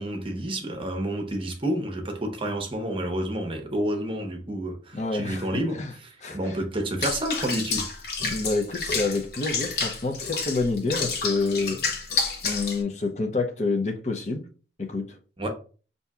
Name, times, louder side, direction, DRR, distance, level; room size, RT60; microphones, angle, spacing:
voice 1, 0.0-7.9 15.4-15.5, right 1 dB, 30° right, 0.8 m, -29 dB
voice 2, 4.9-5.5 5.8-5.9 6.2-6.4 8.3-11.8 12.4-14.5 14.8-15.2, left 3 dB, 40° left, 0.6 m, -28 dB
Water / Bathtub (filling or washing), 7.0-12.8, left 4 dB, 60° left, 1.0 m, -29 dB
6.9 x 2.7 x 2.3 m
head